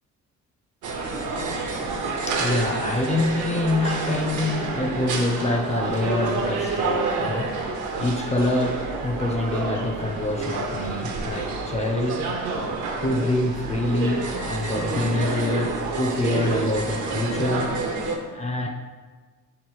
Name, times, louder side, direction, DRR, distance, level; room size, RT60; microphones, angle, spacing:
sound 1, 0.8-18.2, right 3 dB, 75° right, 0.7 m, -28 dB
voice 1, 1.7-12.4 13.0-18.7, left 2 dB, 25° left, 2 dB, 0.4 m, -26 dB
3.6 x 3.0 x 4.8 m, 1.4 s
cardioid pair, 90°, 30 cm